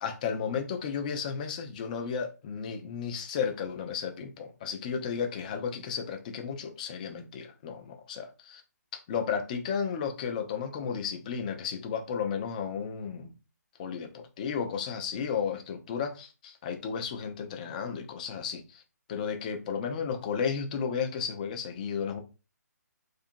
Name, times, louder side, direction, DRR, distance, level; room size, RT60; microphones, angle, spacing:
voice 1, 0.0-8.6 8.9-13.3 13.8-18.8 19.1-22.2, left 6 dB, 25° left, 0.4 m, -33 dB
2.7 x 2.5 x 2.6 m
figure-of-eight pair, 140°, 9 cm